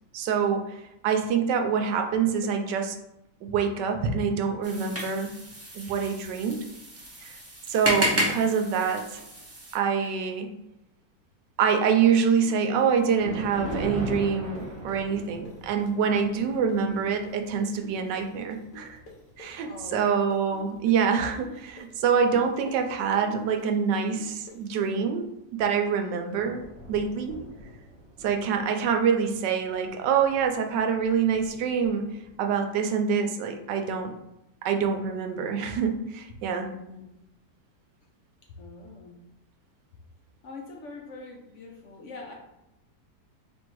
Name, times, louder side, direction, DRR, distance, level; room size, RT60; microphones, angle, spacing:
voice 1, 0.1-3.0 3.4-5.3 5.7-6.6 7.2-7.4 7.7-9.2 9.7-10.5 11.6-19.0 19.4-25.2 25.5-26.6 26.9-27.4 28.2-34.1 34.6-36.7, right 6 dB, 85° right, 5 dB, 1.2 m, -26 dB
sound 1, 4.6-9.8, equal, 20° right, 0.4 m, -32 dB
sound 2, 12.4-20.1 20.3-24.9, left 4 dB, 85° left, 1.5 m, -47 dB
Thunder, 12.8-21.4 21.9-22.1 22.8-22.9 23.3-23.4 25.5-25.8 26.1-26.2 26.4-32.4, right 1 dB, 50° right, 1.2 m, -41 dB
voice 2, 19.6-20.0 28.4-28.7 36.7-37.1 38.6-39.2 40.4-42.3, left 3 dB, 65° left, 0 dB, 0.7 m, -43 dB
3.5 x 2.6 x 4.5 m, 0.87 s
omnidirectional pair, 1.8 m